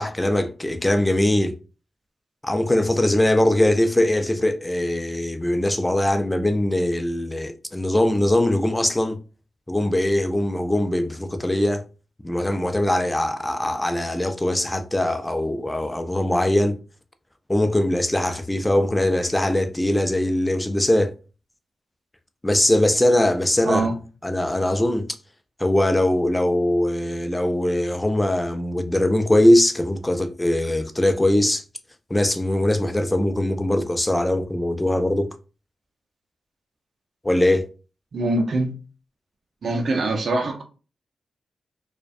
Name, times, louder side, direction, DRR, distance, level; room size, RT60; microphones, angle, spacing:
voice 1, 0.0-1.6 2.4-9.2 9.7-11.8 12.2-16.8 17.5-21.1 22.4-23.9 24.2-25.2 25.6-31.6 32.1-35.3 37.2-37.7, left 1 dB, 15° left, 0.4 m, -21 dB
voice 2, 23.6-23.9 38.1-38.8 39.6-40.6, right 2 dB, 70° right, 0.5 m, -23 dB
2.3 x 2.1 x 2.5 m
supercardioid pair, 45°, 0 cm